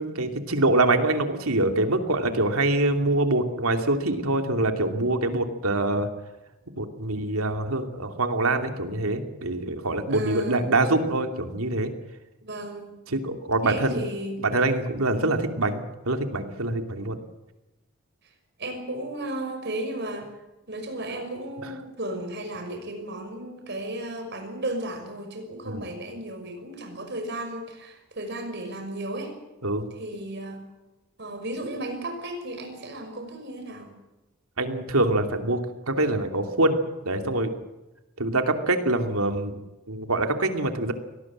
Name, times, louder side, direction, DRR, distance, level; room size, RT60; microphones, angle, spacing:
voice 1, 0.0-6.1 6.8-11.9 13.1-14.0 14.4-17.2 25.7-25.9 29.6-29.8 34.6-35.6 35.9-37.5 38.2-39.6 39.9-40.9, right 2 dB, 90° right, 6 dB, 2.7 m, -25 dB
voice 2, 10.1-10.7 12.4-12.9 13.6-14.3 15.2-15.4 18.6-20.3 20.7-29.3 29.9-30.6 31.2-33.9, right 1 dB, 50° right, 5 dB, 5.8 m, -34 dB
24.0 x 18.5 x 7.6 m, 1.0 s
head